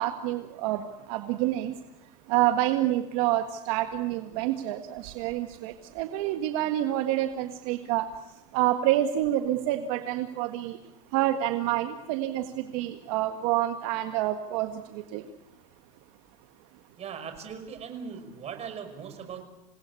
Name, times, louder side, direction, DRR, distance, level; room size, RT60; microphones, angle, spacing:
voice 1, 0.0-1.7 2.3-8.1 8.5-10.8 11.1-15.3, right 13 dB, 70° right, 7 dB, 1.7 m, -28 dB
voice 2, 17.0-19.4, right 7 dB, 35° right, 7 dB, 5.7 m, -39 dB
28.0 x 18.0 x 8.4 m, 0.94 s
supercardioid pair, 115°, 18 cm